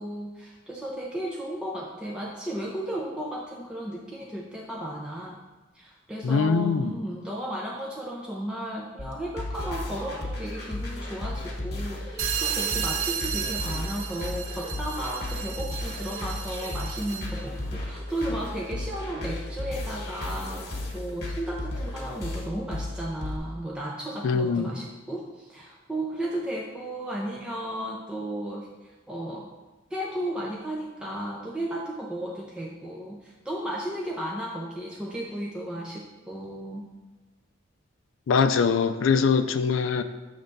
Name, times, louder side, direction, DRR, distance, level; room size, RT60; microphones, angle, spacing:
voice 1, 0.0-5.4 5.7-29.5 29.9-36.9, right 1 dB, 5° right, -3 dB, 0.5 m, -34 dB
voice 2, 6.2-6.9 24.2-24.7 38.3-40.0, left 5 dB, 80° left, 9 dB, 0.4 m, -23 dB
sound 1, 9.0-23.4, left 1 dB, 50° left, 1.2 m, -34 dB
sound 2, 12.2-17.4, right 8 dB, 90° right, 0.5 m, -33 dB
7.0 x 3.3 x 5.2 m, 1.2 s
head